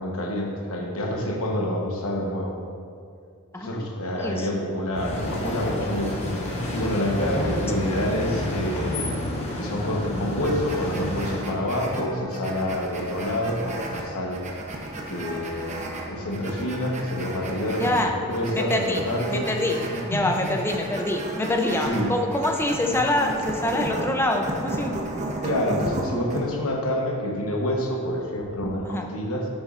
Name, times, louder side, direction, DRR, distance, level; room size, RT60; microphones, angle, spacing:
voice 1, 0.0-2.6 3.5-6.4 6.7-9.1 9.6-14.4 15.1-19.5 19.9-20.5 21.8-22.1 22.9-23.0 25.4-29.5, left 1 dB, 70° left, 0 dB, 1.1 m, -27 dB
voice 2, 3.5-3.9 4.2-4.5 17.8-18.1 18.5-19.0 19.3-19.8 20.0-25.0 28.8-29.1, left 1 dB, 10° left, 2 dB, 0.5 m, -25 dB
sound 1, 4.9-11.5, left 1 dB, 30° left, 1.0 m, -29 dB
sound 2, 10.4-26.4, right 1 dB, 30° right, 0.7 m, -33 dB
9.5 x 6.3 x 2.5 m, 2.3 s
head